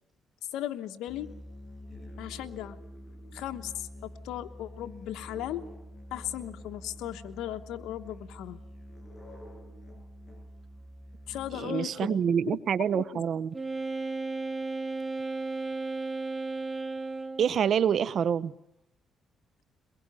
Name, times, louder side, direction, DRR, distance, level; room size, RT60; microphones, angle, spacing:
voice 1, 0.5-1.3 2.2-2.8 3.3-5.6 6.1-8.6 11.3-12.2 13.1-13.2, left 12 dB, 90° left, 6 dB, 1.1 m, -37 dB
Musical instrument, 1.1-11.9, equal, 20° left, 7.8 m, -47 dB
voice 2, 11.5-13.5 17.4-18.5, right 8 dB, 60° right, 18 dB, 0.9 m, -26 dB
Wind instrument woodwind instrument, 13.5-17.6, right 3 dB, 20° right, 2.9 m, -34 dB
22.5 x 21.5 x 9.1 m, 0.78 s
cardioid pair, 90°, 0 cm